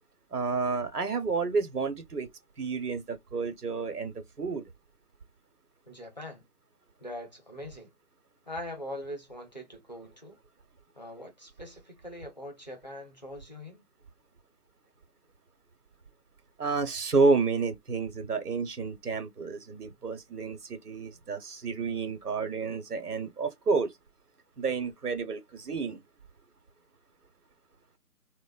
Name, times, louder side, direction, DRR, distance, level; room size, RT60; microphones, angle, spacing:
voice 1, 0.3-2.3 2.6-4.6 16.6-23.9 24.6-26.0, right 4 dB, 85° right, 1.0 m, -30 dB
voice 2, 5.9-6.4 7.0-7.9 8.5-10.4 11.0-13.8, left 1 dB, 30° left, 0.5 m, -42 dB
3.2 x 2.0 x 2.3 m
figure-of-eight pair, 160°, 45 cm